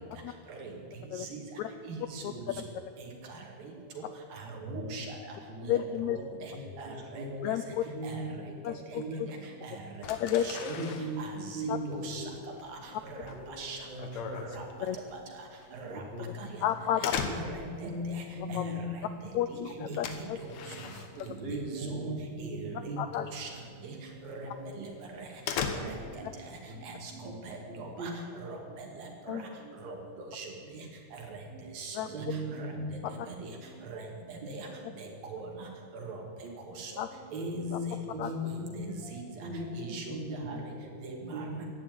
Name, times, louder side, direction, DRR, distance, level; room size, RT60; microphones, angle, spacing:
voice 1, 1.9-2.3 3.0-3.1 4.0-4.1 4.3-5.1 5.6-5.8 6.1-6.5 6.8-7.3 8.0-8.2 9.3-9.4 9.6-9.8 10.4-10.8 11.2-11.6 12.0-12.2 13.0-13.2 13.6-13.8 14.4-14.6 15.7-16.0 16.4-16.5 17.5-17.6 18.5-18.7 19.5-20.0 20.4-20.5 21.2-22.0 22.4-23.0 23.3-23.5 23.8-24.0 24.3-24.5 24.8-24.9 25.2-25.3 25.8-26.0 26.8-28.1 28.4-29.4 29.8-30.0 30.3-30.5 31.1-31.2 31.8-32.2 32.6-32.7 33.1-33.2 33.9-34.0 34.3-34.7 35.0-35.5 35.9-36.2 36.8-36.9 37.3-37.5 38.8-39.3 39.7-40.2 40.5-40.6 41.0-41.5, right 4 dB, 85° right, 1 dB, 3.9 m, -42 dB
voice 2, 5.7-6.2 7.4-7.8 8.6-9.3 10.1-10.5 11.7-11.8 14.8-15.0 16.6-17.1 18.5-18.6 19.3-20.4 23.0-23.3 29.3-29.4 32.0-32.1 37.0-37.1 37.7-37.8 38.2-38.3, left 11 dB, 85° left, 9 dB, 1.6 m, -31 dB
voice 3, 6.5-8.6 9.0-9.2 10.0-10.1 10.6-12.3 13.3-14.4 15.9-16.3 17.3-19.1 19.5-20.2 21.4-23.0 24.1-24.8 26.7-26.8 27.1-27.3 27.7-28.4 28.8-29.0 29.3-29.6 30.7-30.8 32.1-33.5 36.4-36.6 37.3-38.8 39.4-41.6, equal, 35° right, -1 dB, 3.2 m, -39 dB
sound 1, 10.0-21.9 22.2-22.7 23.0-23.2 23.6-23.7 24.2-24.3 24.6-26.3, left 6 dB, 65° left, 2.2 m, -39 dB
14.5 x 10.5 x 9.4 m, 2.3 s
omnidirectional pair, 3.9 m